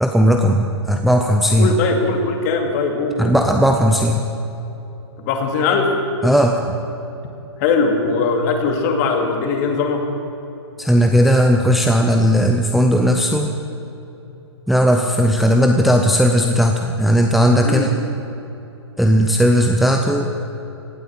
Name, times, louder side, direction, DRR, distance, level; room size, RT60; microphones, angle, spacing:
voice 1, 0.0-1.7 3.2-4.2 6.2-6.7 10.8-13.5 14.7-17.9 19.0-20.3, equal, ahead, 3 dB, 0.6 m, -16 dB
voice 2, 1.6-3.2 5.2-5.9 7.6-10.1 17.6-17.9, left 4 dB, 40° left, 4 dB, 2.4 m, -20 dB
17.5 x 9.4 x 8.6 m, 2.9 s
hypercardioid pair, 140°, 15 cm